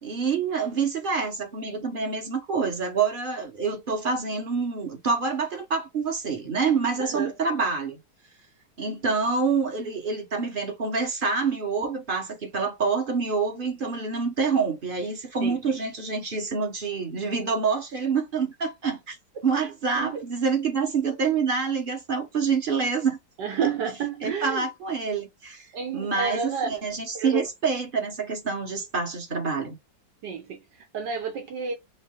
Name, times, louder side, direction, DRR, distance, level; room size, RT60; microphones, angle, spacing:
voice 1, 0.0-8.0 8.8-19.2 19.4-23.2 24.2-25.7 25.9-29.8, right 5 dB, 35° right, 1.2 m, -27 dB
voice 2, 7.0-7.3 15.4-15.6 19.5-19.7 19.9-20.2 23.4-24.7 25.7-26.7 27.1-27.5 30.2-31.7, right 6 dB, 75° right, 1.6 m, -30 dB
5.3 x 2.1 x 3.6 m
omnidirectional pair, 1.9 m